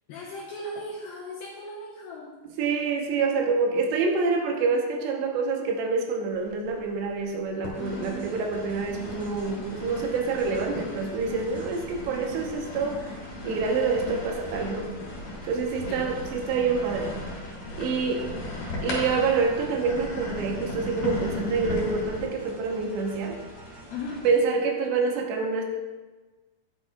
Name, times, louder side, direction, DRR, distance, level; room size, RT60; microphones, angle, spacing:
voice 1, 0.1-2.3 7.8-8.2 15.9-16.1 17.8-18.0 23.9-24.3, left 2 dB, 80° left, -2 dB, 2.2 m, -37 dB
voice 2, 2.6-13.1 13.4-14.9 15.5-17.2 17.8-18.3 18.8-23.4 24.2-25.6, right 4 dB, 85° right, 2 dB, 3.0 m, -27 dB
sound 1, 6.4-7.1 7.6-22.2, left 2 dB, 50° left, 2.5 m, -36 dB
sound 2, 7.7-24.3, equal, 25° right, 0.9 m, -46 dB
10.5 x 7.6 x 2.3 m, 1.2 s
omnidirectional pair, 5.0 m